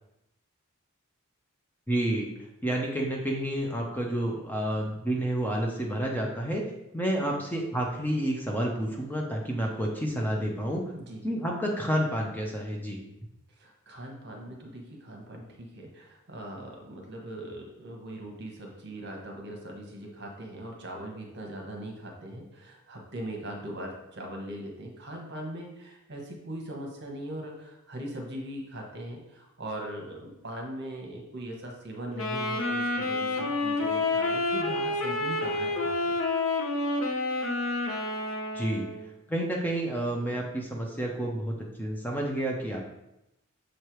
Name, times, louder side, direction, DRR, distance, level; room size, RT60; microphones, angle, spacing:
voice 1, 1.9-2.3 2.6-6.6 6.9-10.8 11.2-13.0 38.5-38.9 39.3-42.8, right 1 dB, 10° left, -1 dB, 0.7 m, -29 dB
voice 2, 13.6-36.2, right 1 dB, 50° right, 1 dB, 1.1 m, -40 dB
Wind instrument woodwind instrument, 32.1-39.1, left 2 dB, 65° left, 0.8 m, -29 dB
6.5 x 3.3 x 4.5 m, 0.88 s
head